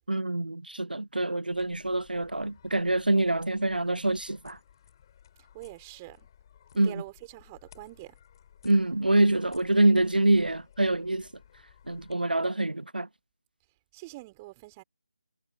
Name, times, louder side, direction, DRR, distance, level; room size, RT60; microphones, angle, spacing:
voice 1, 0.1-4.6 6.8-6.9 8.6-11.3 11.9-13.1, right 2 dB, 85° right, 0.6 m, -25 dB
sound 1, 1.5-12.1, left 9 dB, 30° left, 7.7 m, -58 dB
voice 2, 5.5-6.3 6.8-8.1 13.9-14.8, right 21 dB, 15° right, 4.4 m, -44 dB
figure-of-eight pair, 155°, 5 cm